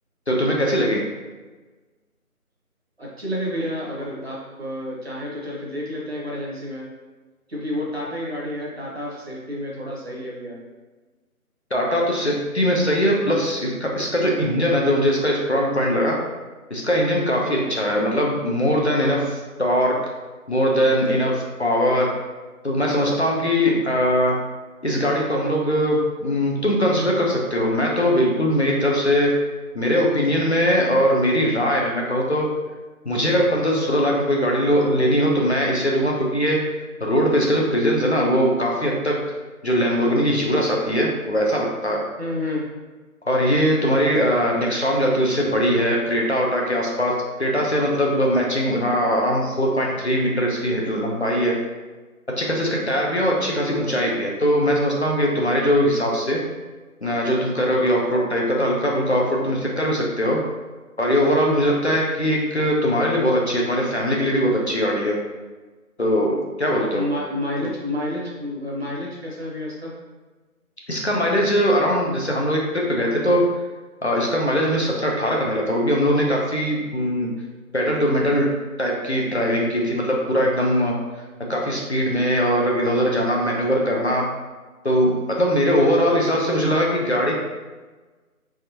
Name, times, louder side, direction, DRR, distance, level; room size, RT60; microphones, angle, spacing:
voice 1, 0.3-1.0 11.7-16.2 16.7-19.9 20.5-22.1 22.6-24.3 24.8-29.3 29.7-32.5 33.0-36.6 37.0-39.2 39.6-42.0 43.3-51.5 52.4-56.4 57.0-60.4 61.0-65.2 66.0-67.0 70.9-73.4 74.0-77.3 77.7-78.5 78.8-80.9 81.5-84.2 84.8-87.3, equal, 50° left, -2 dB, 0.6 m, -21 dB
voice 2, 3.0-6.9 7.5-10.6 17.4-17.8 42.2-42.7 66.9-69.9, left 1 dB, 45° right, -4 dB, 0.9 m, -30 dB
3.5 x 3.2 x 2.8 m, 1.3 s
figure-of-eight pair, 175°, 44 cm